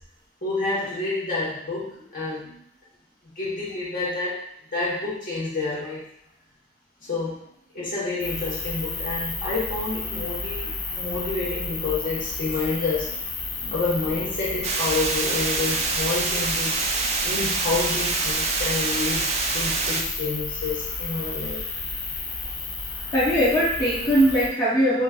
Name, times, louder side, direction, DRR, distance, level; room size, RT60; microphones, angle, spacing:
voice 1, 0.4-2.6 3.2-6.1 7.0-7.4 7.7-13.2 13.7-16.8 17.2-21.7, left 3 dB, 50° left, -7 dB, 1.2 m, -29 dB
sound 1, 8.2-24.5, left 3 dB, 70° left, 0.6 m, -32 dB
sound 2, 14.6-20.0, right 4 dB, 35° right, 0.3 m, -26 dB
voice 2, 23.1-25.0, equal, 20° left, -10 dB, 0.8 m, -20 dB
4.2 x 2.4 x 2.4 m, 0.69 s
head